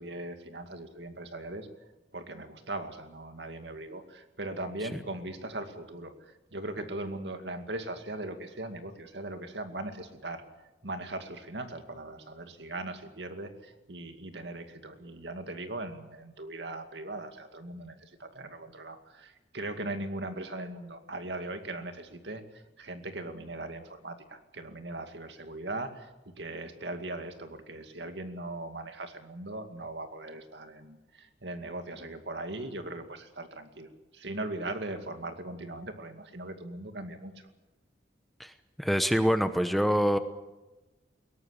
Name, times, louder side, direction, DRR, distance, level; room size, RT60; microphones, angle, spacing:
voice 1, 0.0-1.7 2.1-10.4 10.8-26.1 26.4-37.5, right 2 dB, 70° right, 7 dB, 2.3 m, -39 dB
voice 2, 38.8-40.2, equal, ahead, 9 dB, 0.9 m, -25 dB
22.0 x 18.0 x 8.3 m, 1.1 s
head